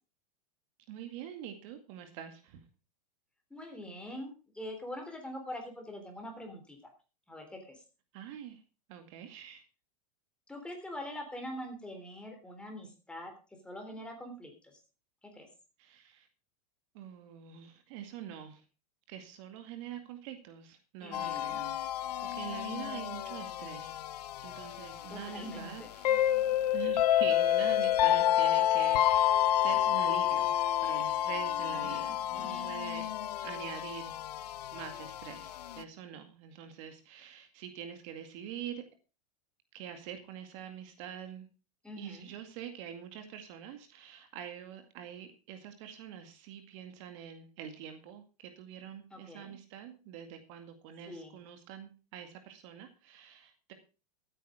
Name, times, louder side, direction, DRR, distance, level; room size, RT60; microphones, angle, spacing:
voice 1, 0.9-2.6 8.1-8.6 8.9-9.6 15.8-16.3 16.9-18.6 19.1-21.8 22.2-24.0 24.4-26.2 26.7-30.5 30.8-33.1 33.4-34.1 34.7-38.8 39.7-41.5 42.0-53.7, right 9 dB, 55° right, 7 dB, 2.2 m, -45 dB
voice 2, 3.5-6.8 7.3-7.8 10.5-13.3 13.6-14.8 15.3-15.5 21.0-21.6 25.1-25.9 31.7-32.7 41.8-42.3 49.1-49.5 51.1-51.3, equal, 5° left, 3 dB, 3.5 m, -44 dB
sound 1, 21.1-35.8, left 12 dB, 85° left, 0.8 m, -30 dB
14.0 x 9.2 x 4.9 m, 0.34 s
supercardioid pair, 140°, 20 cm